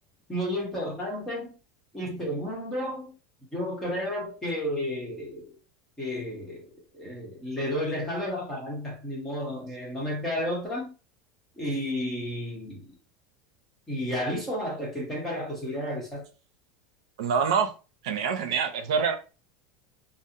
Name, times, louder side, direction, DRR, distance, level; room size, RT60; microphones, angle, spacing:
voice 1, 0.3-1.6 1.9-3.1 3.5-5.5 6.0-6.7 6.9-10.9 11.6-12.9 13.9-16.2, equal, 10° left, 1.0 m, -32 dB
voice 2, 17.2-17.7 18.0-19.2, right 6 dB, 85° right, 0.5 m, -25 dB
2.6 x 2.0 x 2.6 m
supercardioid pair, 165°, 3 cm